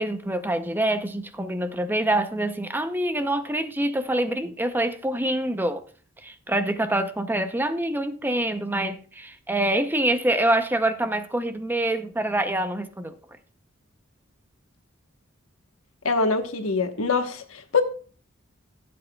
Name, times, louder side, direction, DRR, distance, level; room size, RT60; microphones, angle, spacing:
voice 1, 0.0-5.8 6.2-13.1, right 1 dB, 10° right, 0.6 m, -25 dB
voice 2, 16.0-17.8, left 4 dB, 90° left, 1.1 m, -24 dB
15.5 x 7.8 x 2.3 m
head